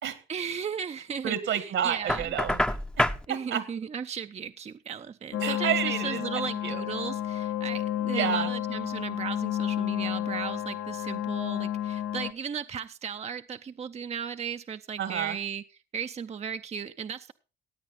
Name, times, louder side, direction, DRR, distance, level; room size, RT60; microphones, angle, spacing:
voice 1, 0.3-2.3 3.3-15.6 15.9-17.3, right 7 dB, 35° right, 9 dB, 0.5 m, -36 dB
voice 2, 1.2-3.6 5.4-6.8 8.1-8.5 15.0-15.4, right 9 dB, 75° right, 12 dB, 1.9 m, -30 dB
Knock, 2.1-3.2, left 1 dB, 5° left, 0.7 m, -27 dB
sound 1, 5.3-12.3, left 11 dB, 65° left, 1.1 m, -31 dB
16.0 x 8.7 x 4.1 m, 0.33 s
cardioid pair, 90°, 20 cm